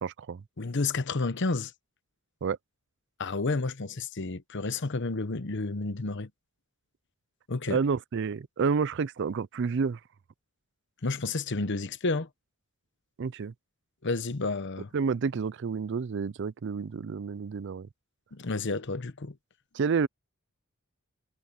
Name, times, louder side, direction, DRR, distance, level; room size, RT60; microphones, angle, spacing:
voice 1, 0.0-0.4 2.4-2.6 7.7-10.0 13.2-13.5 14.9-17.9 19.7-20.1, right 5 dB, 55° right, 0.4 m, -29 dB
voice 2, 0.6-1.7 3.2-6.3 7.5-7.8 11.0-12.3 14.0-14.9 18.3-19.3, left 3 dB, 55° left, 0.9 m, -30 dB
head